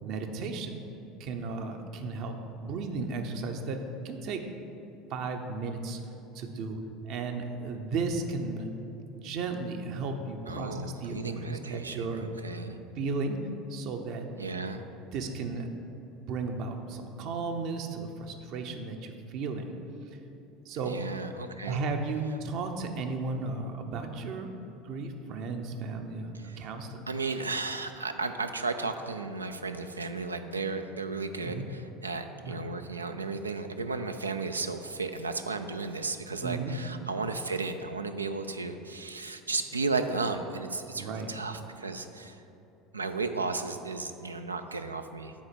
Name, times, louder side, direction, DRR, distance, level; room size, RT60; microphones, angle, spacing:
voice 1, 0.0-0.8 1.2-4.4 5.1-6.0 6.3-6.8 7.0-8.7 9.1-12.3 13.0-13.4 13.7-14.3 15.1-15.7 16.3-19.8 20.7-21.0 21.6-24.5 24.8-27.1 31.4-31.6 32.4-32.6 36.4-36.8 41.0-41.3, right 3 dB, 55° right, 5 dB, 0.7 m, -34 dB
voice 2, 10.5-12.8 14.4-14.9 20.8-21.8 26.3-26.7 27.1-42.4 42.9-45.3, right 3 dB, 90° right, 7 dB, 0.3 m, -34 dB
7.1 x 4.3 x 6.7 m, 2.9 s
figure-of-eight pair, 70°, 0 cm